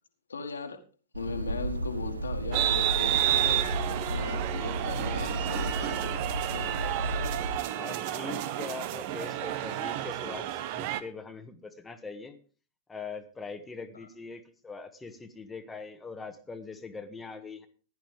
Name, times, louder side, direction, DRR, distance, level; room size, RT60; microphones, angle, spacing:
voice 1, 0.3-0.8 1.1-6.7 13.9-14.1, left 4 dB, 75° left, 6 dB, 1.7 m, -39 dB
sound 1, 1.1-7.6, right 2 dB, 85° right, 0.8 m, -33 dB
sound 2, 2.5-11.0, right 12 dB, 50° right, 0.8 m, -30 dB
voice 2, 7.7-12.4 12.9-17.7, left 4 dB, 10° left, 5 dB, 1.3 m, -42 dB
15.5 x 11.0 x 3.3 m, 0.36 s
figure-of-eight pair, 100°, 0 cm